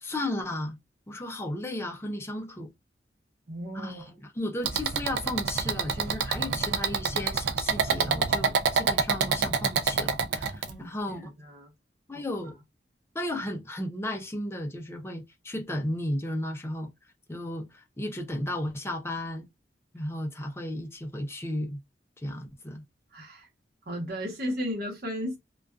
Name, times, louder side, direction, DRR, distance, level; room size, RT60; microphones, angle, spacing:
voice 1, 0.0-0.8 1.1-2.7 3.7-11.3 12.1-12.6 13.1-16.9 17.3-19.5 19.9-21.8 22.2-22.8, left 1 dB, 15° left, 0.5 m, -34 dB
voice 2, 3.5-4.1 10.6-10.9 11.2-11.7 23.1-23.5 23.9-25.4, equal, 60° right, 1.0 m, -34 dB
sound 1, 4.6-10.7, right 5 dB, 75° right, 0.4 m, -27 dB
2.4 x 2.3 x 2.3 m
head